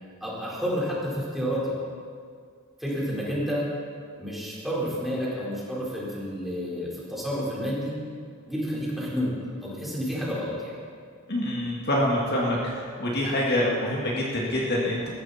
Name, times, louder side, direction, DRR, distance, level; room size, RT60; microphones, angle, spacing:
voice 1, 0.2-1.7 2.8-3.7 4.2-7.9 8.4-9.3 9.6-10.7, equal, ahead, -7 dB, 4.5 m, -30 dB
voice 2, 11.3-15.1, left 1 dB, 50° left, -3 dB, 2.1 m, -26 dB
20.0 x 15.0 x 4.3 m, 2.1 s
head